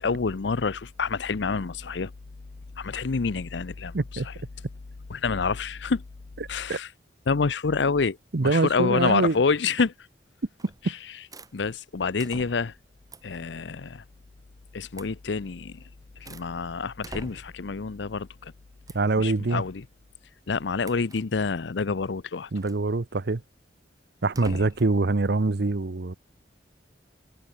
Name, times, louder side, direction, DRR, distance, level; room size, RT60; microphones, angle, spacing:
voice 1, 0.0-2.1 2.8-3.9 4.2-4.3 5.1-6.0 6.5-6.9 7.3-8.2 8.4-9.9 10.8-11.0 11.5-12.7 13.2-14.0 14.7-15.7 16.2-18.5 19.2-19.8 20.5-22.5 24.4-24.6, left 4 dB, 70° left, 0.6 m, -27 dB
voice 2, 3.9-4.3 6.7-6.8 8.3-9.4 18.9-19.6 22.5-23.4 24.2-26.1, right 3 dB, 65° right, 0.8 m, -24 dB
sound 1, 10.6-10.9 11.3-11.5 12.2-12.8 13.1-13.4 14.9-15.2 15.7-16.5 17.0-17.7 18.9-19.1 20.8-21.3 22.6-22.9 24.3-25.0, right 2 dB, 20° right, 2.4 m, -44 dB
head